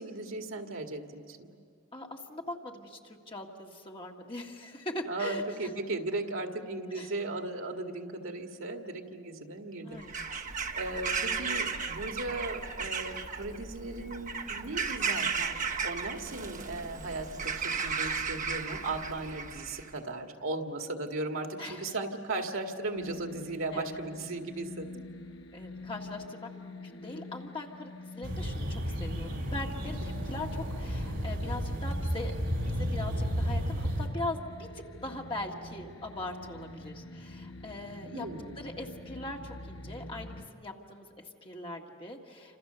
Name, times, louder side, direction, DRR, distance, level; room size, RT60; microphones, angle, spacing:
voice 1, 0.0-1.5 5.1-25.0 38.1-38.6, right 2 dB, 75° right, 4 dB, 1.9 m, -37 dB
voice 2, 1.9-5.7 6.9-7.1 9.8-10.3 21.6-21.9 23.7-24.0 25.5-32.3 32.6-38.3 38.6-42.6, left 2 dB, 25° left, 0 dB, 1.8 m, -41 dB
Bird vocalization bird call bird song / Crow, 10.0-19.9, right 5 dB, 40° right, 1.1 m, -35 dB
sound 1, 22.9-40.5, left 2 dB, 65° left, 1.2 m, -47 dB
sound 2, 28.2-34.1, equal, 60° right, 3.5 m, -32 dB
28.5 x 27.0 x 6.9 m, 2.3 s
head